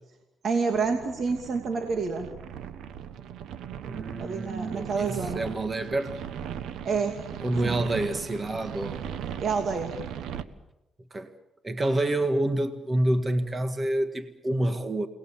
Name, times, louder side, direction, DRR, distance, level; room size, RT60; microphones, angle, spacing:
voice 1, 0.4-2.3 4.2-5.4 6.8-7.2 7.6-7.8 9.4-9.9, right 5 dB, 55° right, 4 dB, 2.7 m, -28 dB
sound 1, 0.7-10.4, right 9 dB, 80° right, 1.3 m, -38 dB
voice 2, 3.9-6.2 7.4-9.0 11.1-11.3 11.6-15.1, right 1 dB, 25° right, 8 dB, 1.9 m, -28 dB
30.0 x 20.0 x 7.2 m, 0.96 s
cardioid pair, 90°, 0 cm